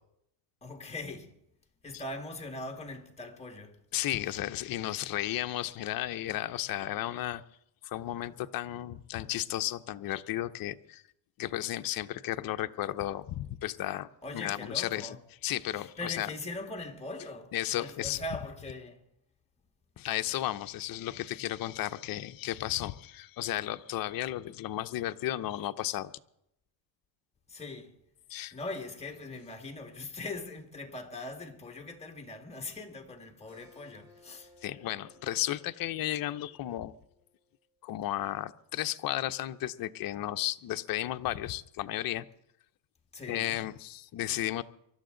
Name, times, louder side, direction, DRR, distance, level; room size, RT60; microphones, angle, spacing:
voice 1, 0.6-1.3 1.8-3.8 14.2-15.2 16.0-19.0 27.5-27.9 28.5-34.5 43.1-43.6, left 2 dB, 15° left, 1.9 m, -41 dB
voice 2, 3.9-7.4 7.8-11.0 11.4-15.2 15.4-16.3 17.5-18.2 20.0-26.1 28.3-28.6 34.6-36.9 37.8-42.3 43.3-44.6, left 14 dB, 45° left, 0.7 m, -34 dB
Keyboard (musical), 33.5-38.7, left 1 dB, 30° right, 6.3 m, -61 dB
23.5 x 12.5 x 3.9 m
cardioid pair, 135°, 49 cm